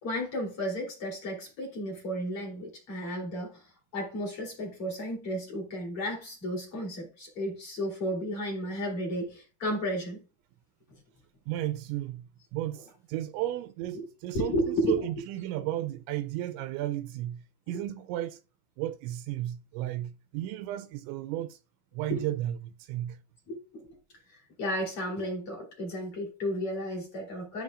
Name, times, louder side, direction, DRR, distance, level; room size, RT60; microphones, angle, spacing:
voice 1, 0.0-10.2 13.9-14.0 14.3-15.1 17.7-17.8 22.1-22.2 23.5-23.9 24.3-27.6, equal, 30° left, 3.7 m, -33 dB
voice 2, 11.5-18.4 18.8-21.6 21.9-23.2, right 14 dB, 85° right, 2.9 m, -34 dB
14.0 x 6.6 x 2.5 m
omnidirectional pair, 5.3 m